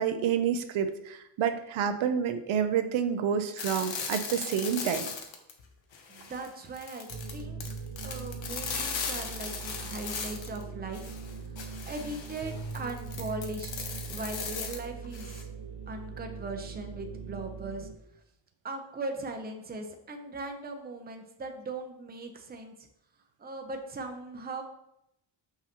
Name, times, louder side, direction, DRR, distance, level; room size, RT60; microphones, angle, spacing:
voice 1, 0.0-5.1, right 8 dB, 80° right, 9 dB, 0.7 m, -28 dB
sound 1, 3.6-5.6 5.9-10.6 10.9-15.4, left 5 dB, 70° left, 1.0 m, -38 dB
voice 2, 6.1-7.6 8.0-11.2 11.6-15.4 15.9-17.9 18.6-22.7 23.4-24.6, right 2 dB, 20° right, 4 dB, 0.6 m, -39 dB
sound 2, 7.1-17.9, right 5 dB, 50° right, 0.9 m, -41 dB
5.8 x 5.6 x 2.9 m, 0.81 s
wide cardioid pair, 145°, 47 cm